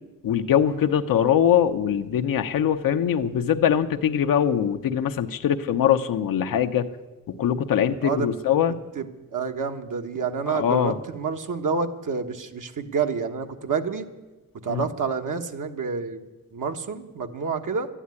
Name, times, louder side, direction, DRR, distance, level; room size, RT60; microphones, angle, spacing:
voice 1, 0.2-6.9 7.3-8.8 10.5-11.0 14.7-14.8, left 9 dB, 90° left, 7 dB, 0.9 m, -22 dB
voice 2, 9.0-14.1 14.6-16.2 16.5-17.9, right 5 dB, 65° right, 5 dB, 1.3 m, -28 dB
12.5 x 10.0 x 9.6 m, 1.2 s
cardioid pair, 75°, 33 cm